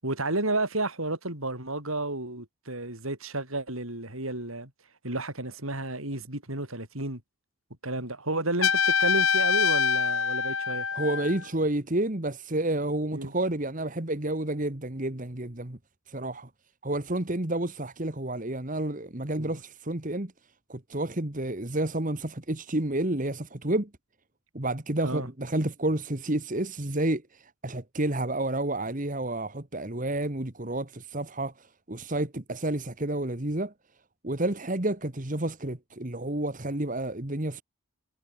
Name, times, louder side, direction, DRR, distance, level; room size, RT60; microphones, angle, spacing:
voice 1, 0.0-4.7 5.0-7.2 7.8-10.9 13.1-13.3 19.4-19.6 25.0-25.3, right 2 dB, 80° right, 7.7 m, -32 dB
Trumpet, 8.6-11.5, left 6 dB, 70° left, 5.4 m, -25 dB
voice 2, 10.9-15.8 16.1-16.5 16.8-20.3 20.7-23.9 24.5-33.7 34.2-37.6, right 1 dB, 40° right, 1.9 m, -30 dB
head